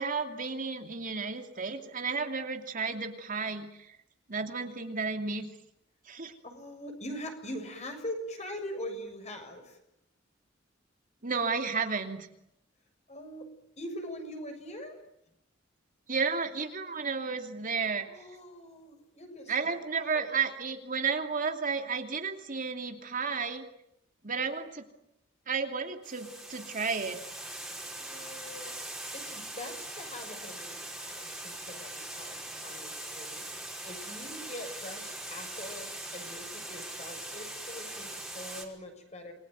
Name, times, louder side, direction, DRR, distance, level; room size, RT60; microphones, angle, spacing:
voice 1, 0.0-4.0 4.3-5.5 6.1-6.3 11.2-12.3 16.1-18.1 19.5-23.7 24.2-24.8 25.5-27.2, right 5 dB, 45° right, 5 dB, 2.7 m, -32 dB
voice 2, 6.4-9.8 13.1-13.5 13.8-15.0 18.1-20.3 28.0-39.3, left 1 dB, 35° left, 5 dB, 7.0 m, -43 dB
Water, 26.0-38.7, right 1 dB, ahead, 5.3 m, -41 dB
28.5 x 22.5 x 9.3 m, 0.80 s
head